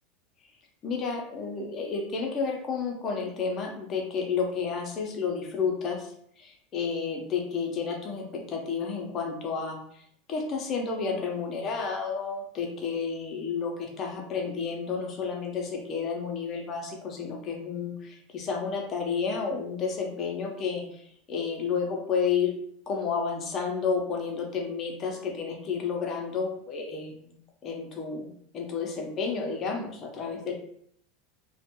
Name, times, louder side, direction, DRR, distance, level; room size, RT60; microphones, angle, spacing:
voice 1, 0.8-10.0 10.3-22.5 22.9-27.3 27.6-30.5, left 5 dB, 40° left, 1 dB, 0.7 m, -31 dB
2.5 x 2.2 x 2.9 m, 0.67 s
hypercardioid pair, 100°, 0 cm